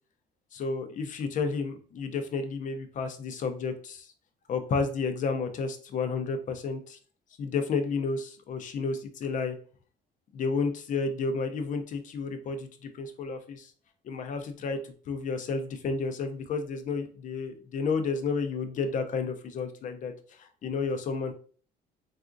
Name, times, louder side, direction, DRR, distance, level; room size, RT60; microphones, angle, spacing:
voice 1, 0.5-4.1 4.5-7.0 7.4-9.6 10.3-13.7 14.0-21.3, left 4 dB, 50° left, 7 dB, 0.6 m, -31 dB
3.6 x 2.4 x 2.5 m, 0.43 s
cardioid pair, 110°, 17 cm